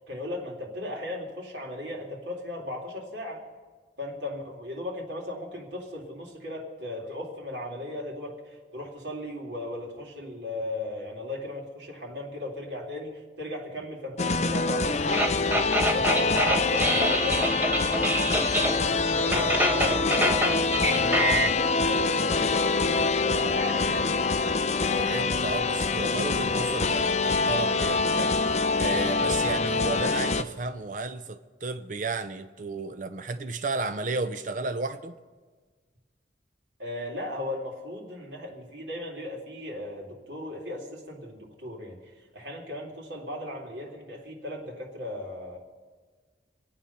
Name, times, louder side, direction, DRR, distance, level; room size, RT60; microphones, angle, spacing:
voice 1, 0.1-3.4 4.0-8.4 8.7-18.1 18.5-20.5 20.8-24.1 36.8-42.0 42.3-45.6, left 1 dB, 85° right, -2 dB, 3.6 m, -36 dB
sound 1, 14.2-30.4, left 4 dB, 40° left, 0.6 m, -25 dB
sound 2, 15.1-18.8 19.1-21.5, right 1 dB, 10° right, 1.2 m, -26 dB
voice 2, 25.0-28.3 28.8-35.2, right 3 dB, 45° right, 8 dB, 0.7 m, -33 dB
26.5 x 8.8 x 5.8 m, 1.4 s
head